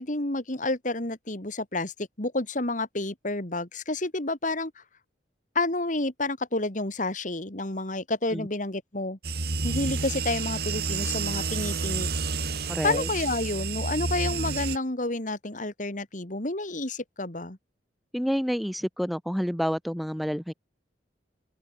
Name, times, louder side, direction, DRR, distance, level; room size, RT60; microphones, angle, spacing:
voice 1, 0.0-4.8 5.5-9.2 9.6-12.1 12.6-17.6, left 2 dB, 45° left, 2.6 m, -30 dB
sound 1, 9.2-14.8, right 4 dB, 60° right, 2.1 m, -30 dB
voice 2, 12.7-13.1 18.1-20.5, equal, ahead, 1.1 m, -29 dB
open air
head